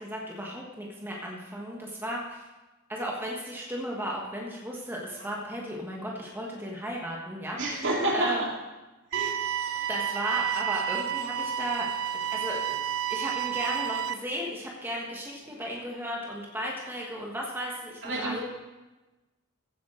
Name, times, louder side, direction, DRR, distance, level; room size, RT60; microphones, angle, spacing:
voice 1, 0.0-2.4 2.9-7.8 8.1-8.4 9.9-11.9 12.3-12.8 13.1-18.4, equal, 10° right, -2 dB, 1.3 m, -35 dB
voice 2, 7.6-8.5 9.1-9.4 18.0-18.4, right 2 dB, 60° right, -2 dB, 2.7 m, -29 dB
sound 1, 9.1-14.1, right 9 dB, 80° right, 0.5 m, -30 dB
15.5 x 8.4 x 3.8 m, 1.1 s
head